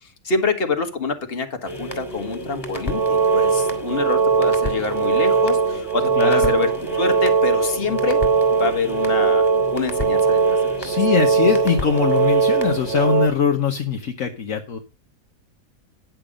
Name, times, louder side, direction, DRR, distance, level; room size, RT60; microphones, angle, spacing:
voice 1, 0.0-8.2 8.5-9.4 9.7-10.9, left 4 dB, 40° left, 6 dB, 1.7 m, -26 dB
sound 1, 1.6-13.2, equal, 15° left, 2.6 m, -32 dB
sound 2, 2.7-13.3, right 5 dB, 55° right, 1.3 m, -20 dB
voice 2, 6.2-6.5 10.8-14.8, left 7 dB, 60° left, 3 dB, 1.4 m, -21 dB
10.5 x 7.0 x 5.1 m, 0.31 s
omnidirectional pair, 1.6 m